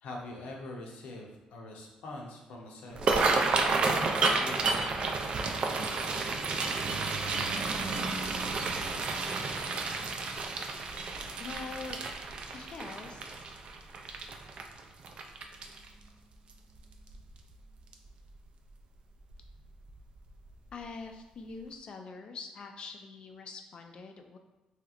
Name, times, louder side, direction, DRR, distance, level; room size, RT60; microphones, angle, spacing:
voice 1, 0.0-4.7, left 2 dB, 80° left, 0 dB, 0.6 m, -44 dB
sound 1, 2.9-16.0 16.5-16.8 17.1-17.5 17.9-18.1 19.3-19.5 19.9-20.0 20.5-20.6, right 3 dB, 50° right, 0.3 m, -31 dB
voice 2, 11.4-12.0 12.5-13.4 20.7-24.4, left 4 dB, 45° left, 4 dB, 0.3 m, -44 dB
3.2 x 2.9 x 2.4 m, 1.1 s
cardioid pair, 125°, 2 cm